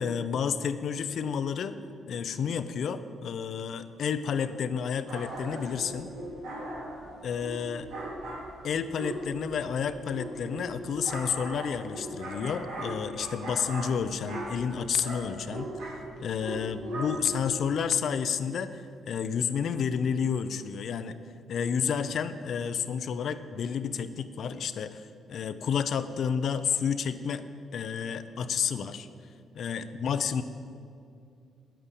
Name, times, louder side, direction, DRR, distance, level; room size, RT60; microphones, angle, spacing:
voice 1, 0.0-1.8 2.0-6.1 7.2-7.9 8.6-21.2 21.5-27.4 27.7-29.1 29.5-30.4, left 7 dB, 65° left, 12 dB, 0.6 m, -30 dB
sound 1, 5.1-17.7, right 1 dB, 85° right, 3.2 m, -39 dB
9.8 x 9.1 x 8.3 m, 2.4 s
cardioid pair, 90°, 0 cm